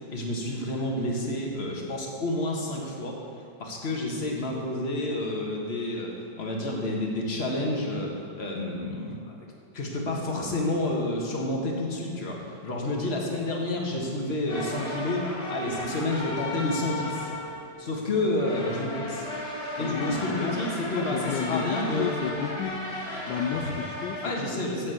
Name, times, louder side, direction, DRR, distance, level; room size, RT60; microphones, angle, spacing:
voice 1, 0.1-3.2 3.6-9.5 9.7-17.3 17.8-19.3 19.8-22.2 24.2-24.9, left 1 dB, 35° left, -1 dB, 1.6 m, -29 dB
sound 1, 14.5-24.3, left 1 dB, 55° left, 2.9 m, -35 dB
voice 2, 19.5-20.6 20.9-22.8 23.3-24.6, left 8 dB, 80° left, 5 dB, 1.2 m, -32 dB
8.4 x 7.5 x 7.8 m, 2.3 s
omnidirectional pair, 2.0 m